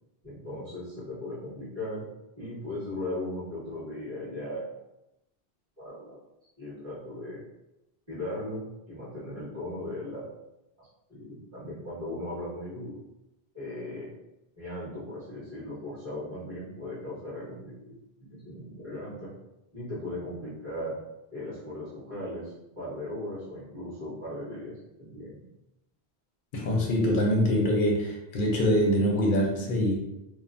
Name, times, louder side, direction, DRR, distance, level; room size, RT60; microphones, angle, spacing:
voice 1, 0.2-2.0 2.4-4.6 5.8-6.2 6.6-7.4 8.1-10.2 10.8-13.0 13.5-14.1 14.6-19.3 19.7-21.0 21.3-25.4, left 1 dB, 25° right, -12 dB, 1.5 m, -38 dB
voice 2, 26.5-30.0, equal, 60° left, -1 dB, 0.7 m, -24 dB
3.0 x 2.0 x 2.5 m, 0.92 s
omnidirectional pair, 1.1 m